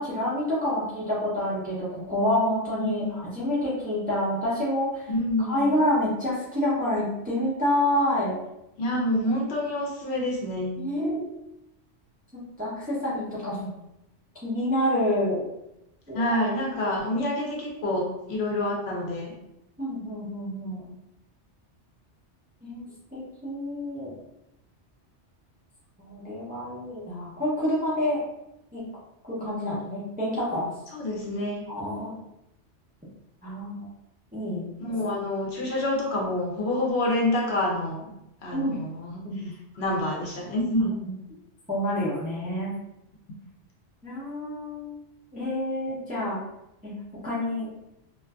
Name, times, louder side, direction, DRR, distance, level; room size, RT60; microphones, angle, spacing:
voice 1, 0.0-5.1 5.4-8.3 10.8-11.2 12.6-13.7 14.4-15.4 16.1-16.4 19.8-20.9 22.6-24.1 26.0-28.2 28.7-28.8 29.2-30.7 31.7-32.2 33.4-33.9 34.3-34.7 38.5-38.8 39.2-39.5 40.8-41.1 41.7-42.7 44.0-45.0 45.3-46.4 46.8-46.9 47.2-47.7, left 1 dB, 10° right, -8 dB, 0.5 m, -28 dB
voice 2, 2.8-3.2 5.1-5.8 8.8-10.8 16.1-19.3 30.9-31.7 34.8-38.1 38.4-39.3 39.8-41.0, left 1 dB, 65° left, -3 dB, 0.8 m, -27 dB
2.5 x 2.4 x 2.3 m, 0.87 s
omnidirectional pair, 1.2 m